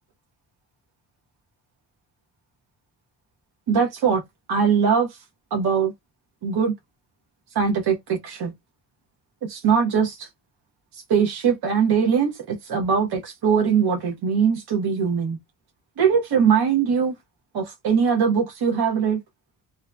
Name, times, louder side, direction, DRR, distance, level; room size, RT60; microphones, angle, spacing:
voice 1, 3.7-4.2 4.5-5.2 5.5-5.9 6.4-6.7 7.5-8.5 9.4-10.3 10.9-15.4 16.0-17.2 17.5-19.2, right 6 dB, 60° right, 0.8 m, -21 dB
2.7 x 2.1 x 2.3 m
wide cardioid pair, 135°, 43 cm